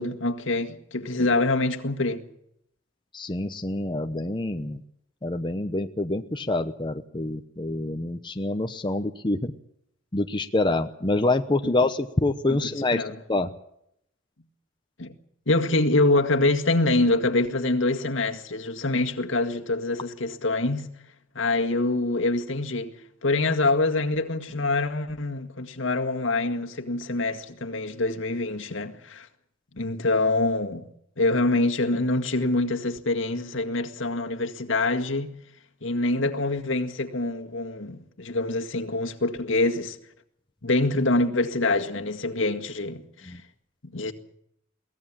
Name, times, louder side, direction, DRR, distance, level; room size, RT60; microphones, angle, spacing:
voice 1, 0.0-2.3 11.6-11.8 12.5-13.2 15.0-15.2 15.5-20.9 21.3-22.9 23.2-29.3 29.7-30.9 31.2-35.3 35.8-40.0 40.6-43.4 43.8-44.1, left 2 dB, 70° left, 1.9 m, -25 dB
voice 2, 3.1-4.8 5.2-9.5 10.1-13.0 13.3-13.5 43.3-43.4, left 2 dB, 25° left, 0.9 m, -26 dB
23.0 x 17.5 x 7.5 m
head